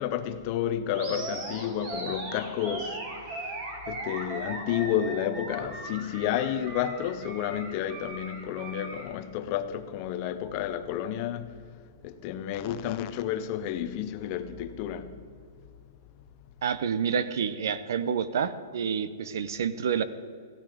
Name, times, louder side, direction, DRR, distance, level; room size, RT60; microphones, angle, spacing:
voice 1, 0.0-3.0 3.3-3.6 3.9-11.5 12.0-15.1, left 10 dB, 25° left, 0.6 m, -31 dB
Animal, 0.9-9.1, right 1 dB, 30° right, 2.3 m, -38 dB
voice 2, 16.6-20.0, right 7 dB, 60° right, 0.8 m, -28 dB
16.0 x 12.5 x 5.0 m
hypercardioid pair, 180°, 2 cm